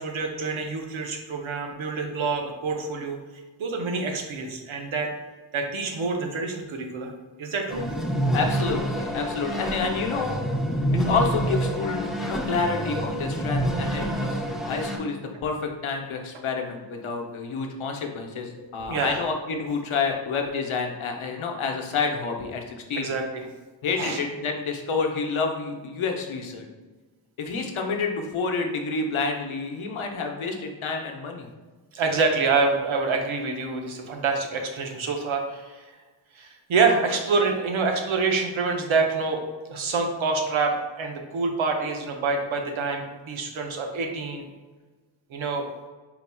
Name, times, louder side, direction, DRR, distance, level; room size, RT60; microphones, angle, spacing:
voice 1, 0.0-3.2 3.6-5.1 5.5-7.1 7.4-7.9 18.8-19.2 23.0-23.4 24.0-24.2 31.9-35.9 36.3-39.4 39.7-44.4 45.3-45.6, right 4 dB, 85° right, 3 dB, 0.8 m, -26 dB
sound 1, 7.7-15.0, right 1 dB, ahead, 0.5 m, -27 dB
voice 2, 8.3-10.4 10.9-23.1 23.8-26.6 27.4-31.5, left 4 dB, 85° left, 2 dB, 0.7 m, -29 dB
4.2 x 4.0 x 2.2 m, 1.3 s
wide cardioid pair, 80°, 47 cm